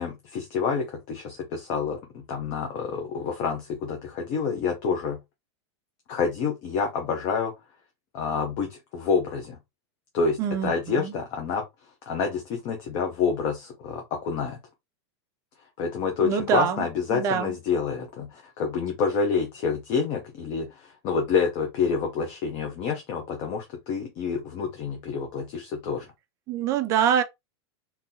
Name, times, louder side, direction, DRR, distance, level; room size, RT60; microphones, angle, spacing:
voice 1, 0.0-5.2 6.1-7.5 8.1-9.6 10.1-11.6 12.1-14.6 15.8-26.1, left 5 dB, 30° left, 0.7 m, -28 dB
voice 2, 10.4-11.1 16.2-17.5 26.5-27.2, right 8 dB, 20° right, 0.4 m, -25 dB
3.8 x 2.7 x 2.7 m
supercardioid pair, 170°, 15 cm